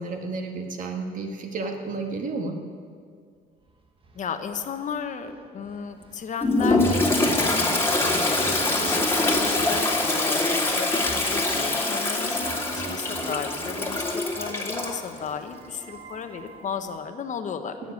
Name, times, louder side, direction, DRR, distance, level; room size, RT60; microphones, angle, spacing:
voice 1, 0.0-2.6 9.3-9.5, right 3 dB, 50° right, 4 dB, 2.0 m, -32 dB
sound 1, 3.7-3.8 4.0-16.8, right 3 dB, 30° right, 1.6 m, -39 dB
voice 2, 4.1-17.9, left 7 dB, 45° left, 7 dB, 1.2 m, -35 dB
Toilet flush, 6.4-15.0, left 2 dB, 15° left, 2.4 m, -24 dB
17.5 x 7.1 x 9.8 m, 2.1 s
cardioid pair, 110°, 17 cm